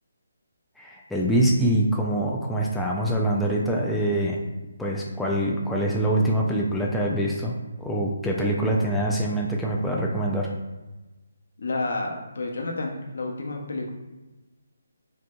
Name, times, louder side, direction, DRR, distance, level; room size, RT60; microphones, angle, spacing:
voice 1, 0.8-4.4 4.8-10.5, right 1 dB, 5° left, -3 dB, 0.4 m, -24 dB
voice 2, 11.6-13.9, left 2 dB, 65° left, 1 dB, 0.8 m, -30 dB
4.9 x 2.7 x 2.3 m, 1.1 s
figure-of-eight pair, 150°, 0 cm